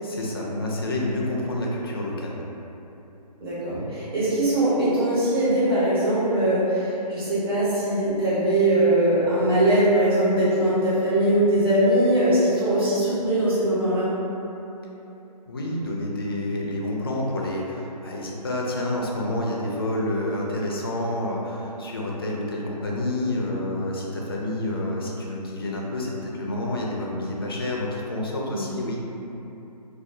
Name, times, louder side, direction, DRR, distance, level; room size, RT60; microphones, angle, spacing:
voice 1, 0.0-2.4 15.5-29.0, left 1 dB, 35° left, -3 dB, 0.4 m, -28 dB
voice 2, 3.4-14.1 28.5-28.6, right 1 dB, 35° right, -11 dB, 0.8 m, -21 dB
2.3 x 2.1 x 3.4 m, 3.0 s
figure-of-eight pair, 145°, 21 cm